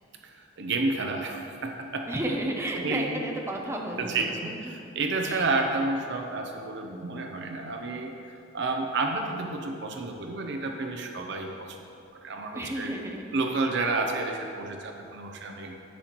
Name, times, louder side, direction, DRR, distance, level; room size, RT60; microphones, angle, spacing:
voice 1, 0.2-2.1 2.8-3.3 4.0-11.8 12.2-12.9 13.3-15.7, right 3 dB, 65° right, 3 dB, 0.7 m, -30 dB
voice 2, 2.1-4.7 5.2-5.5 12.5-13.2, right 1 dB, 15° right, 1 dB, 0.6 m, -33 dB
10.5 x 7.6 x 3.0 m, 2.7 s
head